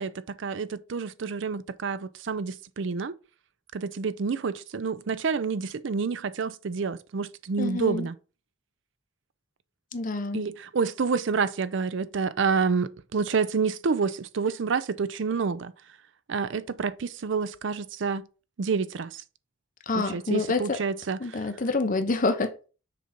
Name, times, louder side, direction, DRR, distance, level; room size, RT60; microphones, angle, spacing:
voice 1, 0.0-3.2 3.7-8.2 10.3-15.7 16.3-18.3 18.6-19.2 19.9-21.5, right 5 dB, 65° right, 0.5 m, -28 dB
voice 2, 7.6-8.1 9.9-10.4 19.9-20.6 21.2-22.7, left 3 dB, 40° left, 0.9 m, -27 dB
6.6 x 3.9 x 5.1 m
head